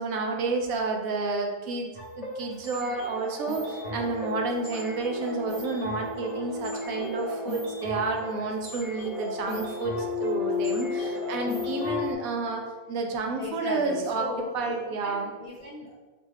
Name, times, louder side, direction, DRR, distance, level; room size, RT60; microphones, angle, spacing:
voice 1, 0.0-1.9 2.2-12.6 12.9-14.3 14.5-15.3, right 3 dB, 80° right, 2 dB, 1.0 m, -30 dB
sound 1, 1.9-12.1, left 3 dB, 30° left, 0.9 m, -33 dB
voice 2, 13.4-14.8 15.0-15.9, left 2 dB, 70° left, -6 dB, 0.4 m, -37 dB
5.3 x 2.3 x 3.3 m, 1.4 s
omnidirectional pair, 1.5 m